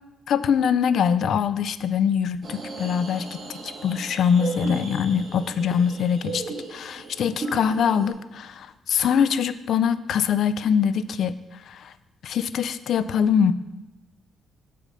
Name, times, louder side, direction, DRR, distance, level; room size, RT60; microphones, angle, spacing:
voice 1, 0.3-3.3 3.6-6.4 6.7-11.4 11.7-11.9 12.2-13.5, left 7 dB, 65° left, 15 dB, 0.3 m, -23 dB
sound 1, 2.4-8.1, right 3 dB, 40° right, 1.7 m, -36 dB
6.5 x 4.9 x 5.5 m, 1.1 s
cardioid pair, 90°, 0 cm